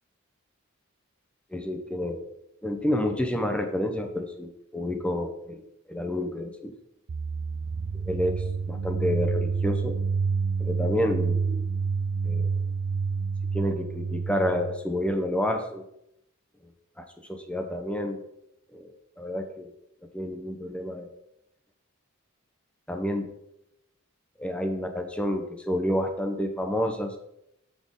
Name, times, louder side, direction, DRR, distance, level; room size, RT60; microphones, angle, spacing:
voice 1, 1.5-2.2 2.6-6.7 8.1-8.3 8.7-10.0 10.6-11.6 12.2-12.5 13.5-15.9 17.0-18.2 18.7-19.7 20.1-21.1 22.9-23.3 24.4-27.2, left 1 dB, 5° left, 4 dB, 0.8 m, -29 dB
sound 1, 7.1-14.8, right 5 dB, 70° right, 0.4 m, -28 dB
6.8 x 6.2 x 3.8 m, 0.80 s
head